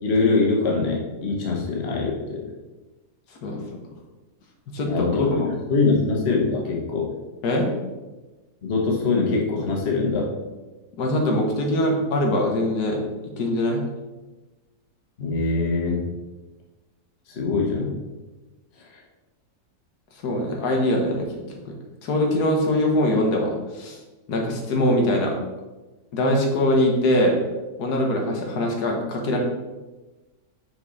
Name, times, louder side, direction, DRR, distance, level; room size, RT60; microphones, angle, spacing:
voice 1, 0.0-2.4 4.8-7.1 8.6-10.3 15.2-16.1 17.3-17.9, left 3 dB, 45° left, -1 dB, 1.4 m, -23 dB
voice 2, 4.7-5.0 5.4-5.5 7.4-7.7 11.0-13.0 13.4-13.8 20.2-21.7 22.0-24.0 24.3-25.3 26.1-27.4 27.8-29.4, left 1 dB, 90° left, 1 dB, 1.6 m, -22 dB
6.1 x 5.2 x 4.0 m, 1.2 s
omnidirectional pair, 1.6 m